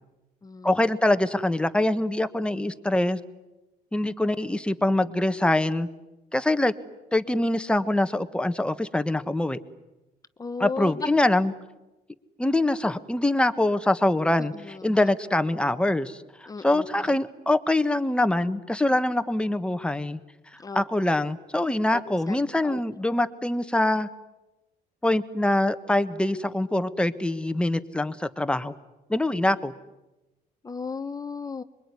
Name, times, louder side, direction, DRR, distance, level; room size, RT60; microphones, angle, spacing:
voice 1, 0.6-3.2 3.9-5.9 6.3-6.7 7.1-9.6 10.6-11.5 12.4-20.2 20.7-24.1 25.0-28.7 29.1-29.7, left 1 dB, 5° left, 10 dB, 1.3 m, -24 dB
voice 2, 10.4-11.1 14.5-15.1 16.5-16.9 20.6-20.8 22.3-22.4 22.6-22.8 30.6-31.6, left 4 dB, 20° left, 11 dB, 1.0 m, -34 dB
25.5 x 22.5 x 9.8 m, 1.0 s
cardioid pair, 110°, 17 cm